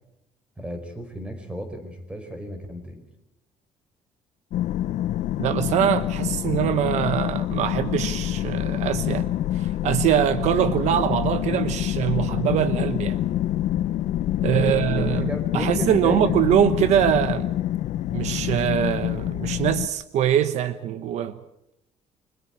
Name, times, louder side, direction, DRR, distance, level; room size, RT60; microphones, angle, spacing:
voice 1, 0.6-3.0 14.4-16.5, equal, 10° right, 5.1 m, -33 dB
sound 1, 4.5-19.9, left 12 dB, 70° left, 1.0 m, -26 dB
voice 2, 5.4-13.2 14.4-17.5 18.1-21.4, right 10 dB, 70° right, 1.1 m, -23 dB
29.5 x 24.5 x 4.7 m
cardioid pair, 155°, 12 cm